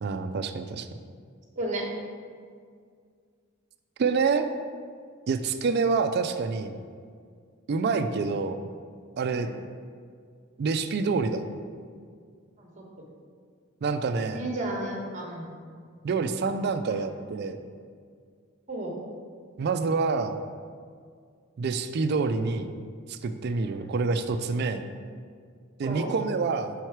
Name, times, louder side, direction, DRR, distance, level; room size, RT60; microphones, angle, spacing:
voice 1, 0.0-0.9 4.0-4.5 5.3-6.8 7.7-8.6 9.2-9.5 10.6-11.5 13.8-14.4 16.0-17.6 19.6-20.4 21.6-22.7 23.1-24.9 25.8-26.7, right 4 dB, 50° right, 9 dB, 0.3 m, -27 dB
voice 2, 1.6-1.9 9.3-9.5 12.6-12.7 13.0-13.1 14.3-15.6 16.9-17.0 18.7-18.9 23.6-23.9 24.8-25.0 25.8-26.1, right 1 dB, 35° right, 0 dB, 1.0 m, -34 dB
5.6 x 4.6 x 4.5 m, 2.1 s
head